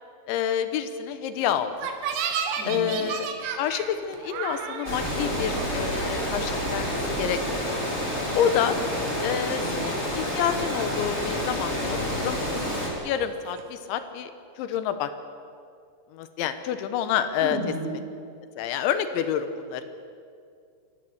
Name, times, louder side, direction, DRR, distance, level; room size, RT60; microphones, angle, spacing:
voice 1, 0.3-1.9 2.6-3.3 3.6-7.8 8.4-8.8 9.2-12.4 13.0-14.3 14.6-15.1 16.1-17.6 18.6-19.8, left 9 dB, 85° left, 10 dB, 3.5 m, -28 dB
sound 1, 1.7-8.3 8.6-9.4 9.7-10.3 10.6-11.7 12.0-13.8, right 7 dB, 90° right, 4.0 m, -35 dB
voice 2, 2.6-3.0 9.5-9.9 17.4-18.0, right 2 dB, 65° right, -1 dB, 6.9 m, -34 dB
Water, 4.8-12.9, equal, 15° left, 3.9 m, -29 dB
26.0 x 15.0 x 8.0 m, 2.3 s
omnidirectional pair, 5.2 m